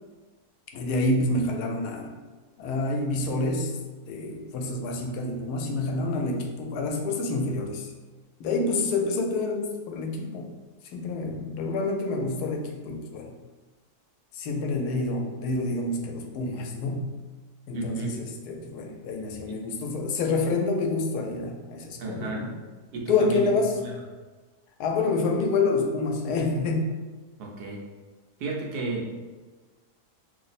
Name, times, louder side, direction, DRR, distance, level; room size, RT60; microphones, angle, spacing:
voice 1, 0.7-2.1 2.6-3.8 4.1-7.9 8.4-10.5 10.9-13.3 14.3-17.2 17.7-22.5 23.1-23.7 24.8-26.9, left 3 dB, 85° left, 2 dB, 1.1 m, -28 dB
voice 2, 17.7-18.1 19.5-19.7 22.0-22.5 22.9-23.5 23.8-24.0 27.4-27.8 28.4-29.1, right 2 dB, 90° right, -1 dB, 1.2 m, -32 dB
3.1 x 2.0 x 4.0 m, 1.3 s
omnidirectional pair, 1.6 m